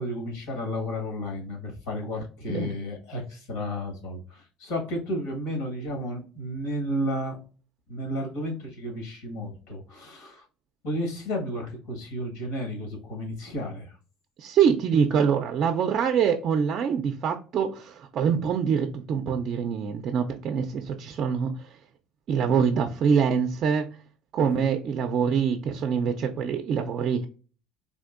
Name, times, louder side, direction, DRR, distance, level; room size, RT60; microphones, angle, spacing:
voice 1, 0.0-7.4 7.9-10.4 10.8-13.9 24.4-24.7, equal, 85° left, 1 dB, 1.4 m, -32 dB
voice 2, 14.4-21.9 22.3-24.0 24.3-27.3, right 7 dB, 45° right, 5 dB, 0.4 m, -25 dB
3.6 x 2.6 x 2.4 m, 0.36 s
cardioid pair, 135°, 0 cm